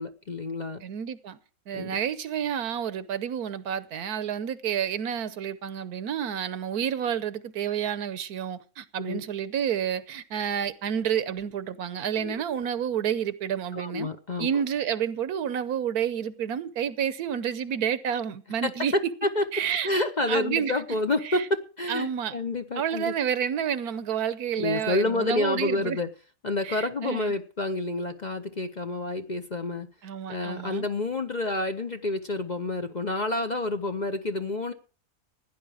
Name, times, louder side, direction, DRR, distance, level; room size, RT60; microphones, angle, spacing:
voice 1, 0.0-0.8 1.7-2.0 9.0-9.2 12.2-12.4 13.7-14.6 18.6-19.4 19.8-23.1 24.6-26.1 26.4-29.9 30.3-34.7, left 2 dB, 35° left, 0.8 m, -29 dB
voice 2, 0.8-1.4 1.7-14.1 14.4-18.9 19.5-19.9 20.3-21.0 21.2-21.5 21.9-22.3 22.8-26.0 26.6-27.3 30.0-30.9, right 8 dB, 80° right, 1.4 m, -29 dB
16.0 x 10.0 x 4.9 m
omnidirectional pair, 1.6 m